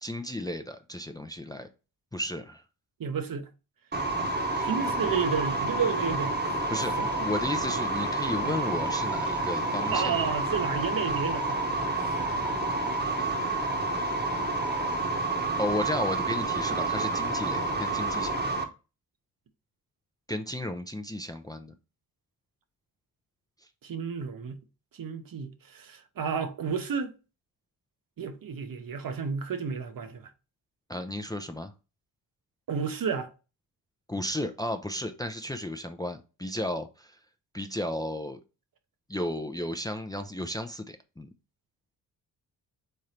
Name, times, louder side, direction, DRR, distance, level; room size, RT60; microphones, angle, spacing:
voice 1, 0.0-1.7 2.1-2.6 4.5-4.7 6.7-10.2 15.6-18.6 20.3-21.7 23.6-23.7 30.9-31.7 34.1-37.2 37.5-38.4 39.1-41.3, left 1 dB, 10° left, 0.6 m, -34 dB
voice 2, 3.0-3.5 4.6-6.4 7.0-7.3 8.4-8.6 9.9-11.8 12.0-12.3 23.8-24.6 24.9-27.2 28.2-30.3 32.7-33.3, right 6 dB, 50° right, 0.9 m, -32 dB
sound 1, 3.9-18.6, right 2 dB, 25° right, 1.1 m, -29 dB
3.7 x 3.3 x 4.2 m
supercardioid pair, 45°, 44 cm